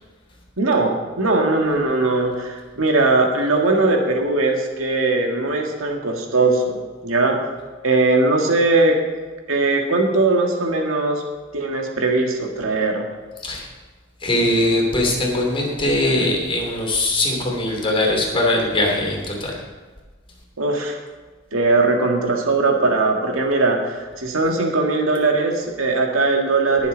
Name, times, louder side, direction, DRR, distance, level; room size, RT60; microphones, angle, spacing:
voice 1, 0.6-7.4 7.8-9.0 9.5-11.2 11.5-13.1 20.6-21.0 21.5-26.9, right 3 dB, 85° right, 1 dB, 1.9 m, -20 dB
voice 2, 14.2-19.6, left 1 dB, 25° left, -1 dB, 2.8 m, -21 dB
20.5 x 7.2 x 4.0 m, 1.4 s
head